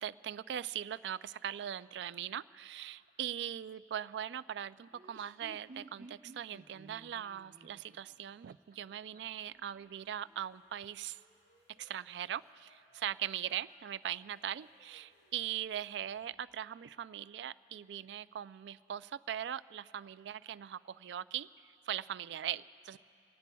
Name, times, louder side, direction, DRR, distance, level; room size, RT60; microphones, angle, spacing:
voice 1, 0.0-11.2 11.8-21.5 21.9-23.0, right 10 dB, 70° right, 16 dB, 0.3 m, -40 dB
Laughter, 4.8-9.4, right 2 dB, 50° right, 0.9 m, -55 dB
sound 1, 9.4-16.7, equal, 85° left, 4.1 m, -71 dB
28.0 x 18.5 x 2.3 m, 2.7 s
head